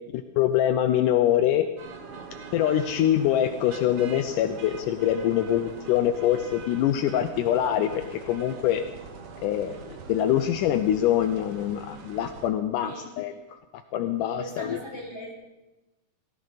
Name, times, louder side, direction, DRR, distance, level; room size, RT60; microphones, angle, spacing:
voice 1, 0.1-1.7 2.5-8.8 9.4-14.8, left 11 dB, 80° left, 9 dB, 2.2 m, -24 dB
sound 1, 1.8-12.5, right 5 dB, 55° right, 1.9 m, -42 dB
voice 2, 14.4-15.3, equal, 5° left, -4 dB, 5.6 m, -39 dB
19.5 x 16.0 x 4.0 m, 1.0 s
omnidirectional pair, 3.9 m